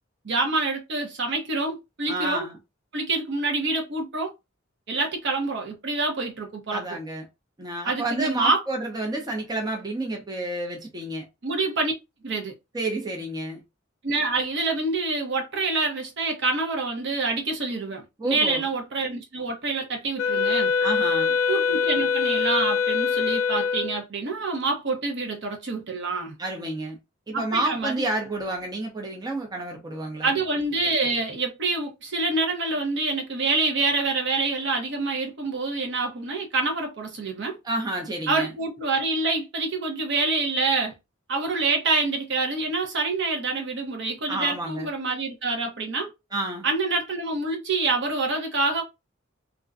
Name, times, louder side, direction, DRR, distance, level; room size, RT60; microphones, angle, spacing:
voice 1, 0.2-2.5 2.9-4.3 4.9-7.0 7.8-8.6 11.4-11.9 12.2-12.5 14.0-20.7 21.5-26.4 27.3-28.0 30.2-37.6 38.3-40.9 41.3-46.1 46.6-48.8, right 3 dB, 60° right, 0.8 m, -26 dB
voice 2, 2.1-2.6 6.7-7.2 7.6-11.3 12.7-13.6 18.2-18.7 20.8-21.3 26.4-27.0 27.3-30.3 37.6-38.5 44.3-44.9 46.3-46.7, right 2 dB, 20° right, 0.5 m, -30 dB
Wind instrument woodwind instrument, 20.2-24.0, left 5 dB, 80° left, 0.3 m, -23 dB
2.4 x 2.1 x 2.4 m
head